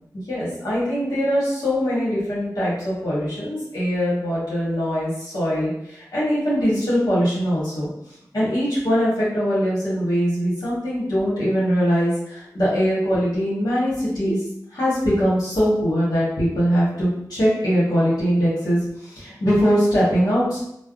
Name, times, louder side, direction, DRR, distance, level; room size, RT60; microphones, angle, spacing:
voice 1, 0.1-7.9 8.3-14.4 14.7-20.6, equal, 70° left, -9 dB, 1.1 m, -22 dB
3.3 x 2.0 x 2.4 m, 0.78 s
cardioid pair, 40°, 7 cm